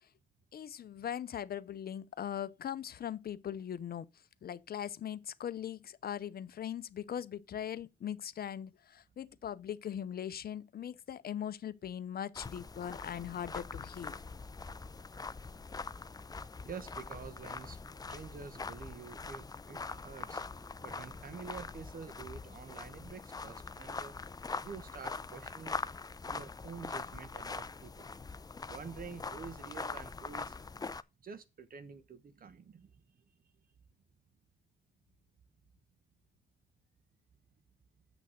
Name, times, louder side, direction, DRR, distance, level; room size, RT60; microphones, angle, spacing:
voice 1, 0.5-4.1 4.4-14.2, left 9 dB, 50° left, 0.7 m, -40 dB
sound 1, 12.3-31.0, left 4 dB, 20° left, 0.6 m, -43 dB
voice 2, 16.6-24.2 24.6-25.8 26.2-28.1 28.6-30.6 31.2-33.0, right 6 dB, 45° right, 1.3 m, -48 dB
7.8 x 6.3 x 6.6 m
cardioid pair, 90°, 20 cm